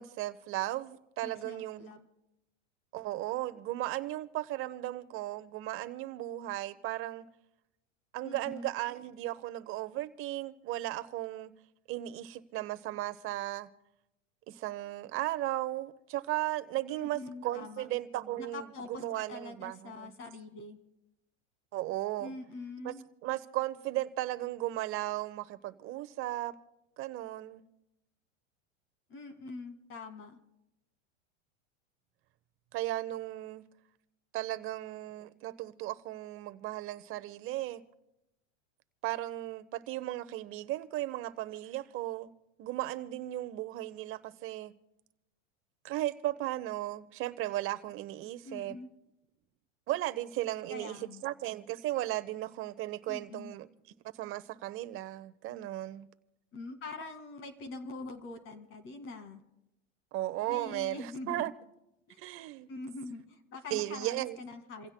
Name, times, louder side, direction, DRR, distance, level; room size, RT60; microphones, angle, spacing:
voice 1, 0.0-1.9 2.9-7.3 8.1-11.5 11.9-13.7 14.5-20.1 21.7-22.3 22.8-22.9 23.2-26.5 27.0-27.6 32.7-33.6 34.3-37.8 39.0-42.3 42.6-44.7 45.8-48.8 49.9-53.7 54.2-56.1 60.1-61.5 62.2-62.7 63.7-64.4, right 15 dB, 35° right, 0.8 m, -36 dB
voice 2, 1.2-2.0 8.2-8.7 16.9-17.9 18.4-19.0 19.3-20.8 22.2-23.0 29.1-30.4 48.4-48.9 50.7-51.2 53.1-53.5 56.5-59.4 60.5-61.5 62.1-62.2 62.7-64.9, left 3 dB, 35° left, 2.0 m, -44 dB
28.5 x 16.0 x 2.2 m
supercardioid pair, 130°, 36 cm